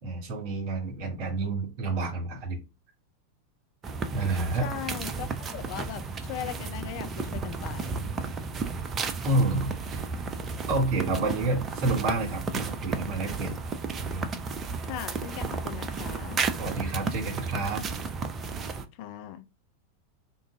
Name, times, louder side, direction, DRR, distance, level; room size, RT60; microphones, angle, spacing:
voice 1, 0.0-2.6 4.1-4.7 9.2-10.0 10.7-13.6 14.0-14.3 16.6-17.8, right 2 dB, 40° right, 2.4 m, -29 dB
sound 1, 3.8-18.9, right 4 dB, 25° right, 0.5 m, -33 dB
voice 2, 4.6-8.1 14.8-16.4 19.0-19.4, left 11 dB, 45° left, 0.4 m, -39 dB
3.7 x 2.6 x 4.5 m
figure-of-eight pair, 90°, 0 cm